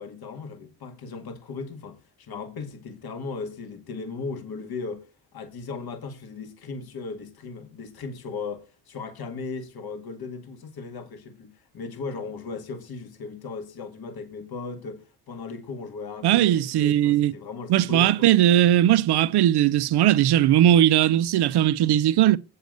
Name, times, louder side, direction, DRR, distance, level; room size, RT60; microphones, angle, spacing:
voice 1, 0.0-5.1 5.3-18.3, left 4 dB, 65° left, 2.1 m, -37 dB
voice 2, 16.2-17.3 17.7-22.4, right 12 dB, 70° right, 0.7 m, -19 dB
8.1 x 6.5 x 6.4 m
cardioid pair, 75°, 40 cm